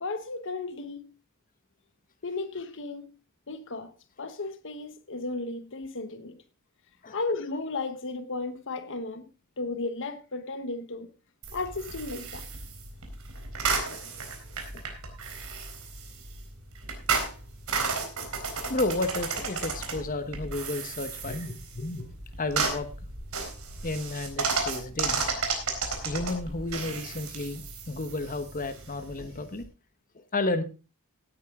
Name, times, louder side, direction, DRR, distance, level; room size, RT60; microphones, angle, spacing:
voice 1, 0.0-1.1 2.2-3.1 3.5-3.9 4.2-6.4 7.1-11.1 11.5-12.4, left 3 dB, 60° left, 1.2 m, -34 dB
sound 1, 11.4-29.6, right 4 dB, 75° right, 4.1 m, -33 dB
voice 2, 18.7-22.9 23.8-25.2 26.0-29.6 30.1-30.6, left 2 dB, 40° left, 1.2 m, -32 dB
17.0 x 9.4 x 3.7 m
head